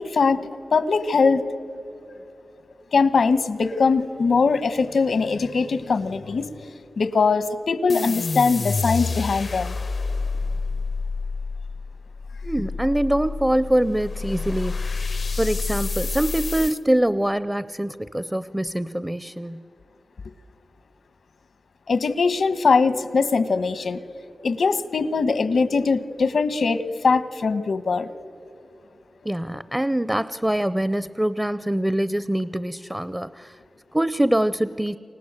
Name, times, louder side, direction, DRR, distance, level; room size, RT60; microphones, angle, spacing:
voice 1, 0.0-1.4 2.9-6.5 7.0-9.7 21.9-24.0 24.4-28.1, left 4 dB, 90° left, 13 dB, 1.1 m, -21 dB
sound 1, 7.9-16.8, left 4 dB, 60° left, 0.5 m, -28 dB
voice 2, 12.4-14.9 15.4-19.6 29.2-33.6 33.9-35.0, right 1 dB, 10° right, 16 dB, 0.6 m, -24 dB
29.0 x 25.0 x 8.1 m, 3.0 s
wide cardioid pair, 85°, 0 cm